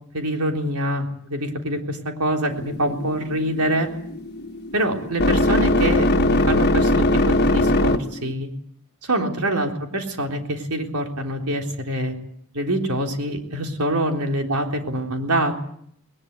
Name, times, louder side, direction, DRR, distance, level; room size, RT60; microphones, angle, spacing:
voice 1, 0.1-3.9 4.7-8.5 9.0-12.1 12.5-15.6, right 1 dB, 90° right, 3 dB, 3.8 m, -25 dB
sound 1, 2.5-8.3, left 1 dB, 50° left, 1.4 m, -21 dB
21.0 x 20.0 x 9.3 m, 0.66 s
head